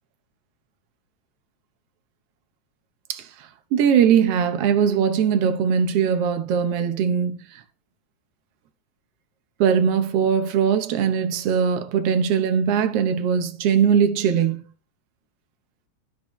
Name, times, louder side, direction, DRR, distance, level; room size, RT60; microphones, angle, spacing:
voice 1, 3.1-7.6 9.6-14.6, right 7 dB, 70° right, 1.5 m, -21 dB
12.5 x 7.1 x 3.1 m
omnidirectional pair, 3.6 m